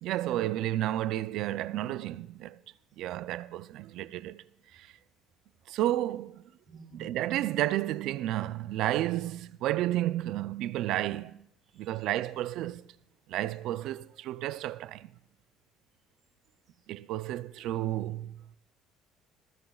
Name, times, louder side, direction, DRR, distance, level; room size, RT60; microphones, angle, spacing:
voice 1, 0.0-2.6 3.0-4.4 4.7-4.9 5.7-6.4 7.0-11.4 11.8-12.8 13.3-15.1 16.9-18.4, right 14 dB, 65° right, 0.4 m, -31 dB
voice 2, 6.6-7.1 11.6-12.3 16.7-16.8, right 4 dB, 35° right, 2.4 m, -52 dB
19.5 x 15.0 x 2.3 m
cardioid pair, 145°, 0 cm